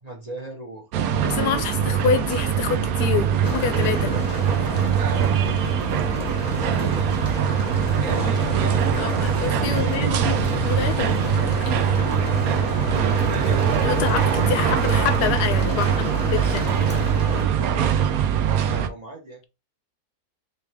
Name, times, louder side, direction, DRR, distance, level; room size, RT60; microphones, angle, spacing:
voice 1, 0.0-1.7 3.7-4.3 4.9-5.7 6.6-7.2 8.1-9.5 13.2-14.1 17.2-19.4, right 1 dB, 30° right, 0.9 m, -38 dB
sound 1, 0.9-18.9, right 8 dB, 70° right, 1.0 m, -22 dB
voice 2, 1.2-4.1 9.0-11.1 12.2-12.3 13.8-14.2 14.5-16.7, left 7 dB, 85° left, 1.2 m, -26 dB
sound 2, 3.4-17.4, left 5 dB, 60° left, 1.3 m, -31 dB
sound 3, 11.6-15.7, left 6 dB, 35° left, 1.0 m, -40 dB
3.4 x 3.3 x 3.3 m
omnidirectional pair, 1.7 m